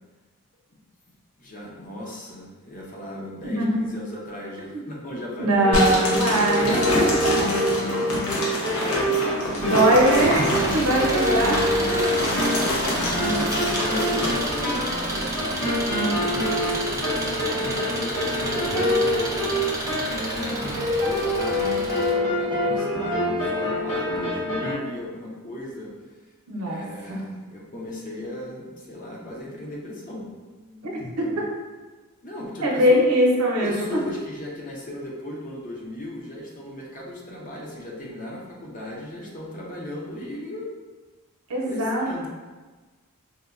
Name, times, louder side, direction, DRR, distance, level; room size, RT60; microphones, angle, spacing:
voice 1, 1.4-9.9 10.8-11.4 11.9-25.9 26.7-30.3 30.7-31.5 32.2-33.0 33.6-40.7 41.7-42.3, left 1 dB, 35° left, -3 dB, 0.6 m, -37 dB
voice 2, 3.4-3.8 5.4-7.3 9.6-11.9 26.5-26.8 27.1-27.2 30.8-31.5 32.6-34.0 41.5-42.3, equal, 80° right, -2 dB, 0.7 m, -22 dB
sound 1, 5.5-24.7, equal, 65° left, 1.1 m, -26 dB
sound 2, 5.7-14.5, left 1 dB, 85° left, 0.7 m, -27 dB
Engine, 9.6-22.1, right 1 dB, 15° right, 0.4 m, -31 dB
4.2 x 2.1 x 2.4 m, 1.3 s
head